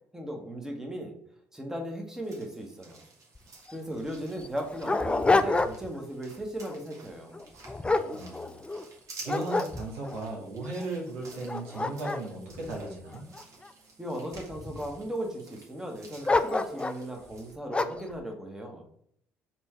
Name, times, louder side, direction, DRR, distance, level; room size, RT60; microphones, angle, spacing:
voice 1, 0.1-1.1 1.5-3.0 3.7-7.4 14.0-18.8, right 1 dB, 5° right, 1 dB, 1.2 m, -37 dB
sound 1, 2.2-17.5, right 3 dB, 50° right, 1.5 m, -52 dB
Dog, 3.3-3.4 3.7-3.8 4.4-6.0 6.4-6.7 7.3-8.8 9.3-10.2 10.8-10.9 11.3-13.7 14.3-15.0 16.2-17.0 17.7-18.1, left 3 dB, 15° left, 0.4 m, -28 dB
voice 2, 7.8-8.6 9.2-13.2, right 2 dB, 80° right, -2 dB, 1.3 m, -36 dB
4.5 x 2.5 x 4.3 m, 0.66 s
hypercardioid pair, 55°, 7 cm